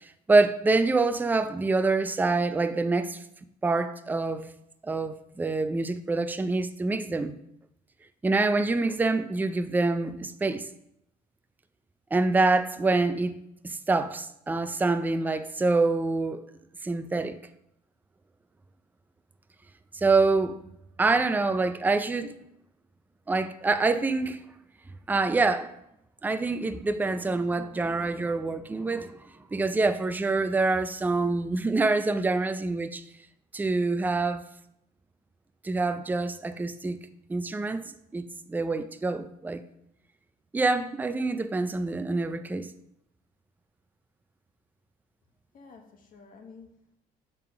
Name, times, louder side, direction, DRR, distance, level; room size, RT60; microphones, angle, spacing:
voice 1, 0.3-3.2 3.6-4.5 4.8-7.4 8.2-10.6 12.1-13.4 13.6-16.4 16.8-17.4 19.9-20.6 21.0-22.4 23.3-24.4 25.1-25.7 26.2-29.1 29.5-33.0 33.5-34.4 35.6-37.0 37.3-39.6 40.5-42.7, right 3 dB, 10° right, 0.4 m, -26 dB
voice 2, 45.5-47.0, left 4 dB, 55° left, 1.6 m, -51 dB
6.7 x 3.6 x 5.7 m
cardioid pair, 110°, 17 cm